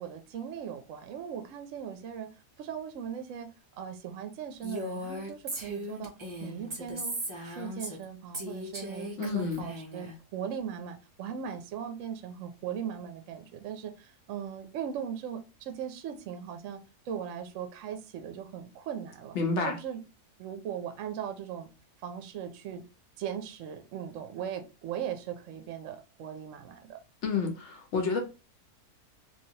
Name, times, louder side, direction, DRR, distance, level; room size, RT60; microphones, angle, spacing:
voice 1, 0.0-2.3 2.6-3.5 3.8-6.1 6.4-7.2 7.4-16.8 17.1-19.4 19.7-20.0 20.4-21.7 22.0-22.8 23.2-27.0, right 8 dB, 65° right, 0.8 m, -38 dB
Female speech woman speaking, 4.6-8.0 8.3-10.1, equal, 45° right, 0.3 m, -38 dB
voice 2, 9.2-9.7 19.3-19.8 27.2-28.2, left 4 dB, 55° left, 1.0 m, -29 dB
3.2 x 2.6 x 2.8 m
omnidirectional pair, 1.7 m